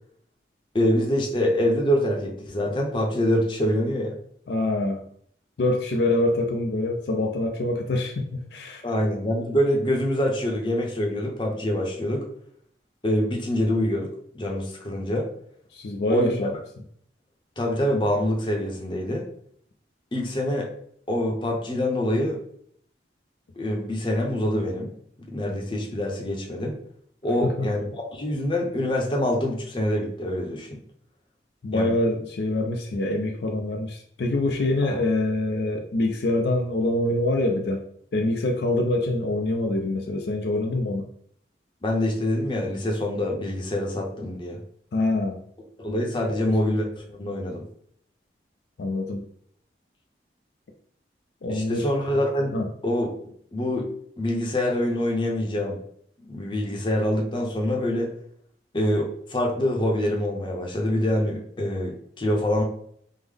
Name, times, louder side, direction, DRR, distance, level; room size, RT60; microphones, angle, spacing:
voice 1, 0.7-4.1 8.8-12.3 13.0-15.3 16.1-16.4 17.6-19.2 20.1-20.7 21.1-22.4 23.6-24.9 25.3-26.8 27.2-30.8 31.7-31.9 34.8-35.0 41.8-44.6 45.8-47.6 51.5-52.6 52.8-53.1 53.5-53.9 54.2-55.8 56.2-58.1 58.7-62.6, left 1 dB, 25° left, 0 dB, 0.6 m, -25 dB
voice 2, 4.5-5.1 5.6-8.8 15.7-16.6 27.4-27.7 31.6-37.9 38.1-41.1 44.9-45.4 46.3-46.6 48.8-49.3 51.4-51.9 52.5-52.7, left 2 dB, 65° left, 3 dB, 0.4 m, -25 dB
3.6 x 2.0 x 3.3 m, 0.65 s
head